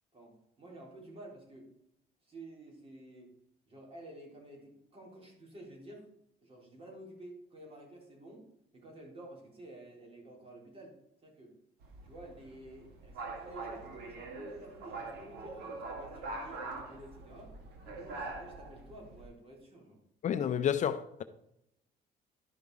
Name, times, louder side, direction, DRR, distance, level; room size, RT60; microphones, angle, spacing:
voice 1, 0.1-1.7 2.2-3.3 3.7-6.1 6.4-8.5 8.7-11.6 12.0-17.6 17.9-20.0, right 1 dB, 35° right, 3.9 m, -51 dB
sound 1, 11.8-19.2, right 3 dB, 80° right, 2.0 m, -44 dB
voice 2, 20.2-21.2, left 9 dB, 45° left, 0.6 m, -30 dB
12.0 x 5.3 x 4.8 m
cardioid pair, 110°, 17 cm